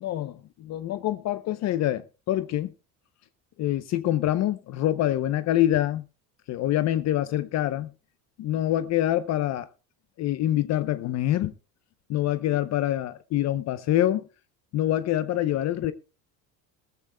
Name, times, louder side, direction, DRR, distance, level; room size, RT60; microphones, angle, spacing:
voice 1, 0.0-2.7 3.6-6.0 6.5-7.9 8.4-9.7 10.2-11.5 12.1-14.2 14.7-15.9, left 13 dB, 45° left, 0.7 m, -25 dB
19.5 x 14.5 x 2.3 m
cardioid pair, 165°, 37 cm